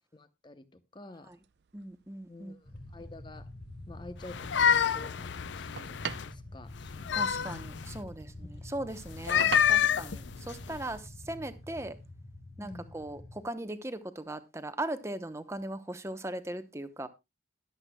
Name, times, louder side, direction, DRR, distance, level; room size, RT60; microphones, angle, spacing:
voice 1, 0.1-1.4 2.3-3.5 3.9-7.6 12.6-12.9, left 2 dB, 25° left, 0.8 m, -50 dB
sound 1, 1.3-12.1, right 6 dB, 65° right, 0.5 m, -46 dB
voice 2, 1.7-2.6 7.1-12.0 12.6-17.1, right 1 dB, 15° right, 0.9 m, -39 dB
sound 2, 2.6-13.4, left 1 dB, 55° left, 2.3 m, -47 dB
sound 3, 4.2-6.3 6.8-8.0 9.1-10.9, left 8 dB, 75° left, 0.5 m, -28 dB
21.0 x 8.0 x 2.2 m
head